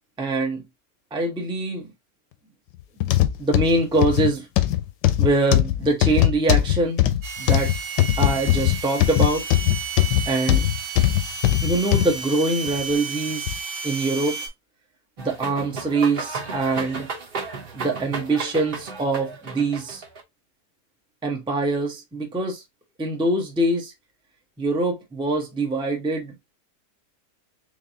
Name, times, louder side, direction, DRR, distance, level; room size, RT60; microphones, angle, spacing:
voice 1, 0.2-0.6 1.1-1.9 3.4-4.5 5.2-7.0 7.4-7.7 8.2-9.5 10.3-10.7 11.6-13.5 13.8-14.4 15.2-17.1 17.7-20.0 21.2-22.6 23.0-23.9 24.6-26.3, right 2 dB, 5° right, 0.5 m, -24 dB
sound 1, 3.0-12.1 12.7-12.8 13.5-13.6, left 14 dB, 85° left, 1.2 m, -20 dB
sound 2, 7.2-14.5, right 5 dB, 85° right, 1.6 m, -32 dB
sound 3, 15.2-20.2, right 4 dB, 45° right, 0.9 m, -33 dB
4.0 x 3.4 x 2.7 m
omnidirectional pair, 1.8 m